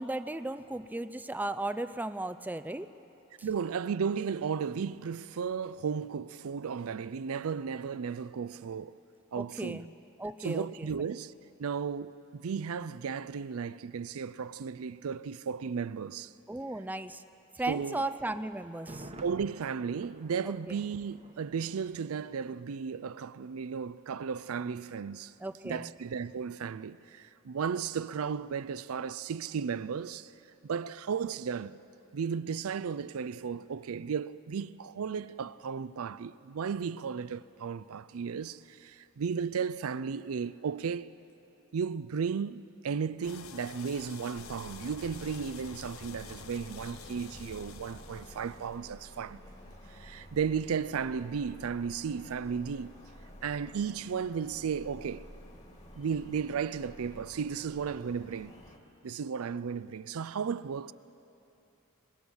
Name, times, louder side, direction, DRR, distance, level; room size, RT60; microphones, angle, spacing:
voice 1, 0.0-2.9 9.4-9.9 10.2-10.9 16.5-17.2 17.6-19.1 20.7-20.8 25.4-25.9, right 2 dB, 10° right, 0.4 m, -36 dB
voice 2, 3.4-9.0 9.3-9.8 10.4-11.3 11.6-16.3 17.7-18.0 19.2-25.3 25.6-30.3 30.6-31.8 32.1-41.1 41.7-49.4 49.9-53.0 53.4-55.3 55.9-58.5 59.0-60.9, right 6 dB, 70° right, 0.4 m, -34 dB
Thunder, 18.7-22.6 22.9-23.0, right 1 dB, 30° right, 1.0 m, -50 dB
sound 1, 43.2-48.7, left 7 dB, 65° left, 0.8 m, -49 dB
sound 2, 44.3-58.8, equal, 30° left, 2.1 m, -51 dB
23.0 x 20.0 x 7.1 m
head